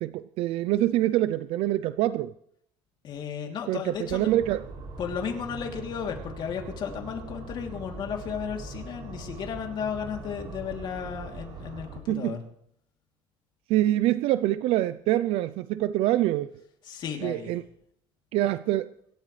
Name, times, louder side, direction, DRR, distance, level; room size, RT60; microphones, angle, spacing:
voice 1, 0.0-2.3 3.7-4.6 12.1-12.4 13.7-16.5 17.2-17.6 18.3-18.9, right 14 dB, 70° right, 15 dB, 0.5 m, -25 dB
voice 2, 3.0-4.3 5.0-12.4 16.8-17.6, left 7 dB, 50° left, 2 dB, 3.0 m, -34 dB
sound 1, 4.3-12.0, right 3 dB, 50° right, 5.4 m, -41 dB
25.0 x 13.0 x 3.3 m, 0.72 s
cardioid pair, 135°, 10 cm